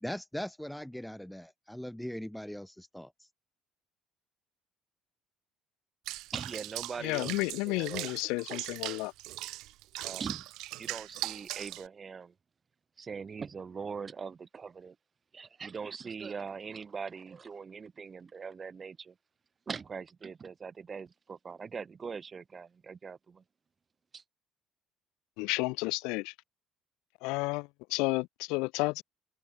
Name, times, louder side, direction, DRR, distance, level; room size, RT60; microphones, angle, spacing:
voice 1, 0.0-3.3, equal, 5° left, 0.6 m, -40 dB
Water / Bathtub (filling or washing), 6.1-11.9, right 18 dB, 75° right, 0.4 m, -40 dB
voice 2, 6.3-7.3 7.6-9.0 10.0-10.5 10.7-12.3 13.0-15.0 15.3-19.2 19.7-23.4 24.1-24.2, right 5 dB, 30° right, 2.1 m, -42 dB
voice 3, 7.0-9.1 25.4-26.3 27.2-29.0, left 26 dB, 85° left, 0.3 m, -32 dB
cardioid pair, 105°, 0 cm